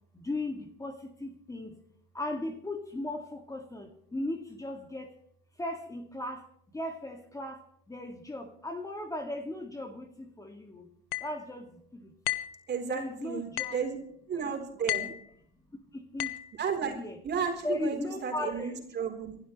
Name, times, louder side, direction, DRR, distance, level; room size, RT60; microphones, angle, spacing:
voice 1, 0.1-1.8 2.1-5.1 5.6-6.4 6.7-7.6 7.9-10.9 11.2-12.1 12.9-13.8 14.3-14.5 14.8-15.1 15.9-16.4 16.8-17.2 17.6-18.8, left 1 dB, 10° left, 4 dB, 2.1 m, -37 dB
sound 1, 11.1-11.4 12.3-12.6 13.6-13.9 14.9-15.2 16.2-16.5, left 16 dB, 75° left, 1.2 m, -33 dB
voice 2, 12.7-14.0 14.3-15.1 16.6-17.0 17.2-19.4, right 6 dB, 35° right, 3 dB, 4.0 m, -33 dB
29.5 x 12.0 x 3.2 m, 0.67 s
hypercardioid pair, 85°, 29 cm